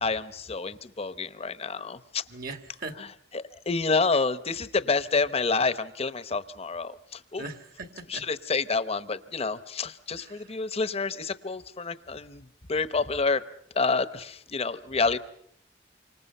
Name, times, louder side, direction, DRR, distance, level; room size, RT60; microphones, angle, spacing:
voice 1, 0.0-2.2 3.0-3.1 3.3-7.4 8.1-13.4 13.7-15.2, left 4 dB, 35° left, 14 dB, 0.9 m, -28 dB
voice 2, 2.3-3.0 7.4-8.3 10.1-10.5, right 3 dB, 55° right, 8 dB, 1.6 m, -40 dB
28.0 x 25.5 x 5.5 m, 0.69 s
head